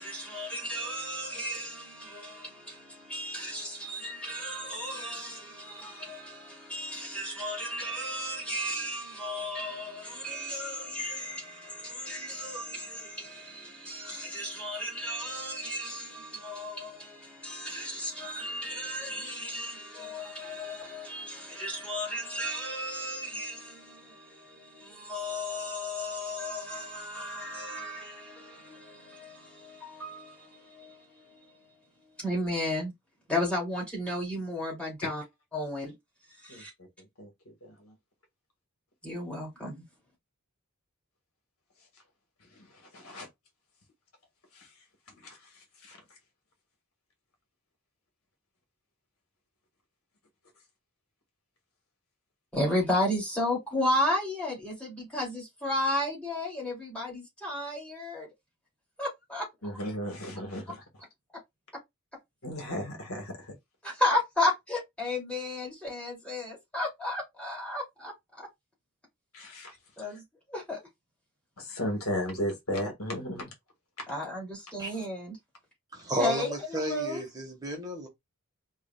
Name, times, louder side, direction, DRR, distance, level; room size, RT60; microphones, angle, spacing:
voice 1, 0.0-31.7 32.0-32.9 33.3-35.2 35.5-35.9 36.3-36.7 39.0-39.9 52.5-58.3 59.0-59.7 63.8-68.5 70.0-70.8 74.1-75.4 76.2-77.2, left 1 dB, 5° left, 2.8 m, -34 dB
voice 2, 37.2-37.9 42.5-43.3 44.5-44.7 45.2-46.0 59.6-60.8 62.4-63.5 69.3-69.8 71.6-73.5 74.0-74.1, equal, 70° left, 1.8 m, -35 dB
voice 3, 75.9-78.1, right 1 dB, 15° right, 1.4 m, -32 dB
4.9 x 3.3 x 2.4 m
head